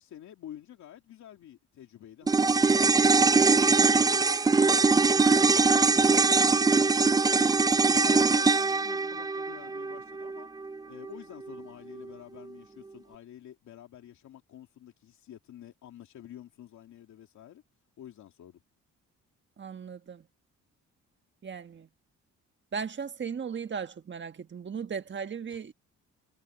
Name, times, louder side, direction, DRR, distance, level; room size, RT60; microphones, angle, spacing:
voice 1, 0.0-10.5 10.8-17.6 18.0-18.6 25.5-25.7, left 11 dB, 70° left, 2.7 m, -49 dB
sound 1, 2.3-10.8 11.0-11.1, right 4 dB, 15° right, 0.3 m, -22 dB
voice 2, 19.6-20.2 21.4-21.9 22.7-25.7, right 6 dB, 40° right, 1.6 m, -37 dB
cardioid pair, 90°, 30 cm